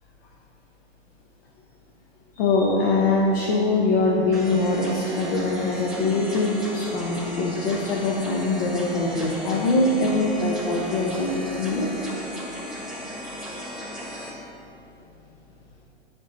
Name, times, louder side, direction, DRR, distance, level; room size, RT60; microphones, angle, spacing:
voice 1, 2.4-11.9 13.2-13.7, left 2 dB, 55° left, -2 dB, 1.1 m, -23 dB
sound 1, 4.3-14.3, equal, ahead, 1.3 m, -36 dB
8.7 x 5.4 x 4.2 m, 2.9 s
hypercardioid pair, 110°, 33 cm